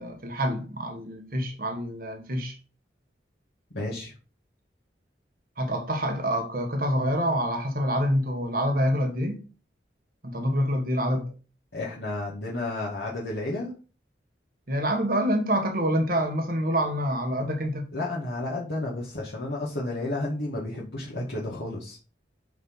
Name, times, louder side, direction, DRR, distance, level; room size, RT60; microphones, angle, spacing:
voice 1, 0.0-2.5 5.6-9.4 10.2-11.3 14.7-17.9, equal, 50° right, 1.4 m, -26 dB
voice 2, 3.7-4.1 11.7-13.7 17.9-22.0, left 2 dB, 75° left, 2.1 m, -32 dB
9.1 x 4.3 x 3.8 m
head